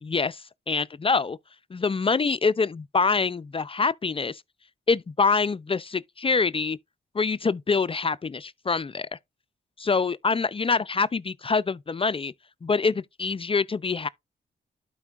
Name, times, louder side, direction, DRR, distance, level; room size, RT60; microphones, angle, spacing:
voice 1, 0.0-1.4 1.7-4.4 4.9-6.8 7.1-9.1 9.8-12.3 12.6-14.1, left 4 dB, 30° left, 0.4 m, -25 dB
12.0 x 4.5 x 2.4 m
cardioid pair, 65°, 20 cm